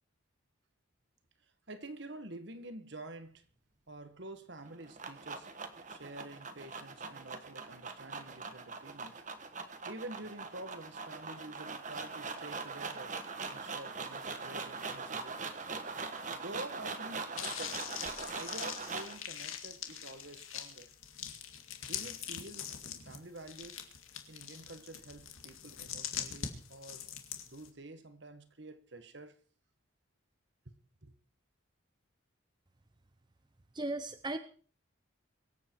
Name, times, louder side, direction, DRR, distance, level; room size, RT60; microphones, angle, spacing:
voice 1, 1.7-3.4 3.9-5.5 5.9-9.2 9.8-13.2 13.5-15.4 16.3-17.9 18.2-20.9 21.8-23.8 24.3-27.1 27.4-29.4 30.6-30.7 31.0-31.1, right 2 dB, 60° right, 1.5 m, -48 dB
sound 1, 4.6-19.2, right 4 dB, 35° right, 1.4 m, -42 dB
sound 2, 17.4-27.7, left 9 dB, 85° left, 2.1 m, -43 dB
voice 2, 33.7-34.4, right 2 dB, 20° right, 0.6 m, -36 dB
24.0 x 8.5 x 4.6 m
head